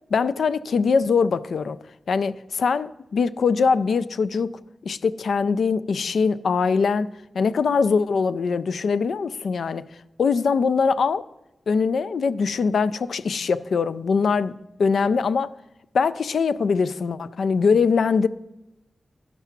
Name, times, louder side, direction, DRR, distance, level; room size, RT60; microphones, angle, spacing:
voice 1, 0.1-1.8 2.1-9.9 10.2-11.2 11.7-14.5 14.8-15.5 15.9-18.3, left 5 dB, 85° left, 0.3 m, -22 dB
11.0 x 5.8 x 5.8 m
wide cardioid pair, 125°, 0 cm